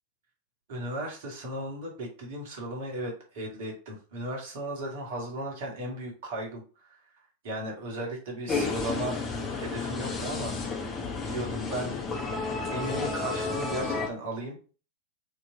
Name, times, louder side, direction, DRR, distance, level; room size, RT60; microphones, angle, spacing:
voice 1, 0.7-6.9 7.4-9.2 9.5-10.9 11.2-11.9 12.7-14.7, right 1 dB, 55° right, 0 dB, 1.6 m, -36 dB
sound 1, 8.5-14.1, left 4 dB, 25° left, 1.0 m, -32 dB
4.4 x 3.1 x 2.8 m, 0.37 s
figure-of-eight pair, 90°, 0 cm